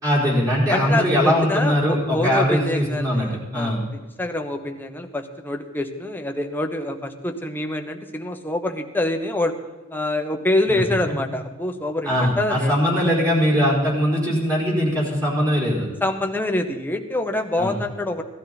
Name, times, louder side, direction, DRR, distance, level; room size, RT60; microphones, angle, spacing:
voice 1, 0.0-3.8 10.7-10.8 12.0-15.9 17.6-17.8, equal, 20° right, -6 dB, 4.5 m, -21 dB
voice 2, 0.7-3.7 4.2-9.5 9.9-12.7 16.0-18.2, left 1 dB, 10° left, 4 dB, 1.0 m, -26 dB
17.0 x 12.5 x 4.2 m, 1.2 s
head